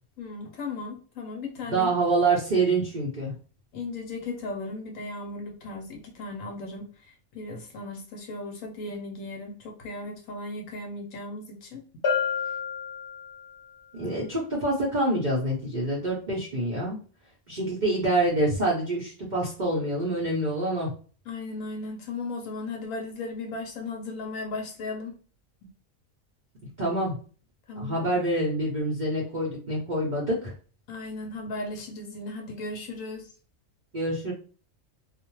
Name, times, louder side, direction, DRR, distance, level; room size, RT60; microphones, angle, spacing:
voice 1, 0.2-1.9 3.7-11.8 21.3-25.2 27.7-28.1 30.9-33.3, left 3 dB, 75° left, 2 dB, 1.0 m, -36 dB
voice 2, 1.7-3.3 13.9-17.0 17.5-20.9 26.8-27.2 27.8-30.5 33.9-34.3, right 2 dB, 45° right, -6 dB, 0.7 m, -26 dB
Bell, 12.0-13.6, left 6 dB, 45° left, 0.9 m, -29 dB
2.4 x 2.1 x 3.0 m, 0.39 s
omnidirectional pair, 1.4 m